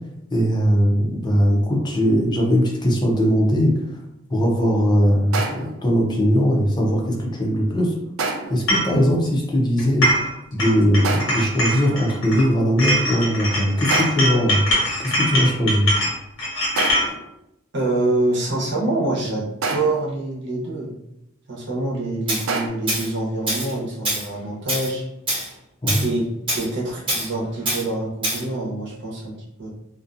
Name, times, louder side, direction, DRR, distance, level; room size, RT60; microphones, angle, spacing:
voice 1, 0.3-3.7 4.3-7.9 8.5-10.1 10.5-14.6 15.0-15.9 25.8-26.0, equal, 20° left, -1 dB, 0.5 m, -19 dB
sound 1, 5.3-5.8 8.2-8.7 11.0-11.6 13.9-14.4 16.8-17.3 19.6-20.1 22.5-22.7, right 3 dB, 85° right, 0.4 m, -27 dB
sound 2, 8.7-8.9 9.8-10.3 10.6-12.5 12.8-17.1, equal, 80° left, 1.2 m, -22 dB
voice 2, 17.7-20.9 21.5-25.0 26.0-26.3 26.5-29.7, right 2 dB, 60° right, -4 dB, 0.8 m, -25 dB
Tools, 22.3-22.4 22.9-23.1 23.5-23.7 24.0-24.3 24.7-24.9 25.3-25.5 25.9-26.1 26.5-26.7 27.1-27.3 27.7-27.8 28.2-28.4, right 1 dB, 25° right, 1.0 m, -24 dB
2.5 x 2.2 x 2.5 m, 0.85 s
head